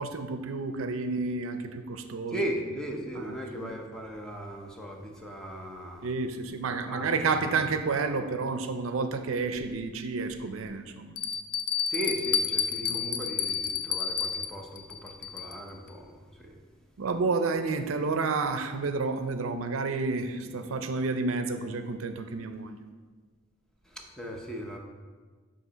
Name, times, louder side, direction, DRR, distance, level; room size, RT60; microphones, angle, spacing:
voice 1, 0.0-2.4 3.1-3.7 6.0-11.2 12.8-13.1 17.0-22.8, right 4 dB, 75° right, 8 dB, 0.5 m, -30 dB
voice 2, 2.3-6.1 6.8-7.2 7.4-7.6 11.9-16.6 23.9-24.8, equal, 5° left, 0 dB, 0.7 m, -37 dB
Bell, 9.6-9.7 10.3-10.4 11.2-15.7, left 7 dB, 85° left, 0.4 m, -30 dB
7.8 x 2.9 x 5.6 m, 1.4 s
head